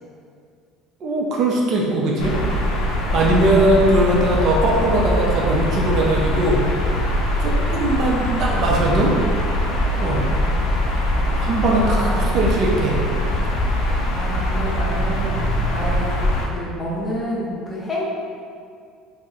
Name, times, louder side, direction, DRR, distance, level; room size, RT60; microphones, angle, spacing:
voice 1, 1.0-2.4 3.1-6.6 7.4-9.2 10.0-10.3 11.3-13.0, right 1 dB, 45° right, -3 dB, 0.5 m, -20 dB
sound 1, 2.2-16.5, equal, 90° left, 0.5 m, -22 dB
voice 2, 3.2-3.7 11.8-12.4 13.8-16.2 16.5-18.0, equal, 15° left, -5 dB, 0.5 m, -29 dB
2.7 x 2.0 x 3.6 m, 2.2 s
cardioid pair, 145°, 0 cm